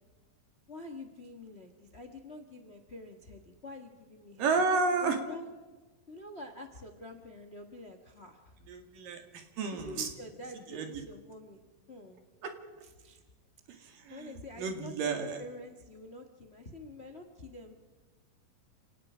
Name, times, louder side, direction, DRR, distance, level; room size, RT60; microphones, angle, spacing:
voice 1, 0.7-4.5 5.0-5.5 6.1-8.6 9.7-11.6 11.9-12.3 12.8-13.2 14.1-17.8, left 2 dB, 85° left, 6 dB, 0.5 m, -47 dB
voice 2, 4.4-5.2 8.7-10.1 10.7-10.9 12.4-12.5 13.7-15.4, right 4 dB, 75° right, 5 dB, 3.9 m, -31 dB
29.0 x 18.0 x 5.1 m, 1.2 s
omnidirectional pair, 4.0 m